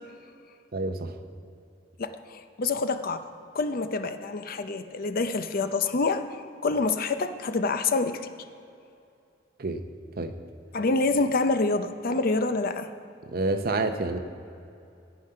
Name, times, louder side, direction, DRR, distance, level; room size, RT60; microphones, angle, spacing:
voice 1, 0.7-1.1 9.6-9.8 10.2-10.3 13.3-14.2, right 2 dB, 55° right, 8 dB, 0.8 m, -28 dB
voice 2, 2.0-3.2 3.5-8.2 10.7-12.9, left 3 dB, 50° left, 9 dB, 0.6 m, -27 dB
14.0 x 9.1 x 5.7 m, 2.6 s
head